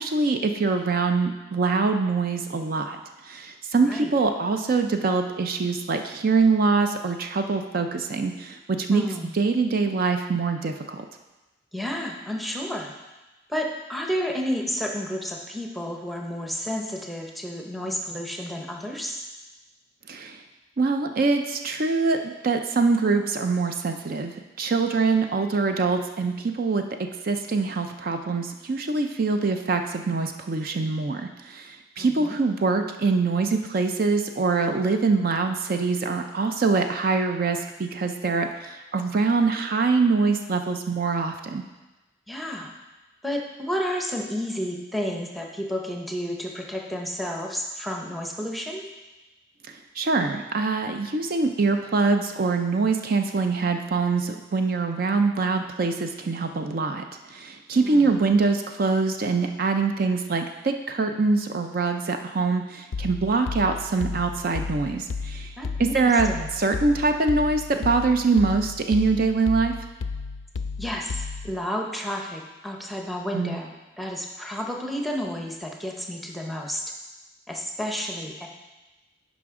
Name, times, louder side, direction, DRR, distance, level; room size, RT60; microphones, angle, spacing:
voice 1, 0.0-3.0 3.2-9.1 9.3-11.0 20.1-20.4 20.8-24.3 24.6-26.8 27.2-41.6 50.0-57.0 57.3-65.5 65.8-66.3 66.6-69.7 73.3-73.6, right 4 dB, 50° right, 6 dB, 0.4 m, -24 dB
voice 2, 8.9-9.3 11.7-12.9 13.5-19.2 32.0-32.4 42.3-42.7 43.2-48.9 57.8-58.1 65.6-66.5 70.8-76.8 77.5-78.5, equal, ahead, 0 dB, 0.7 m, -31 dB
sound 1, 62.9-71.6, left 4 dB, 85° left, 0.4 m, -33 dB
10.5 x 5.1 x 3.7 m, 1.1 s
head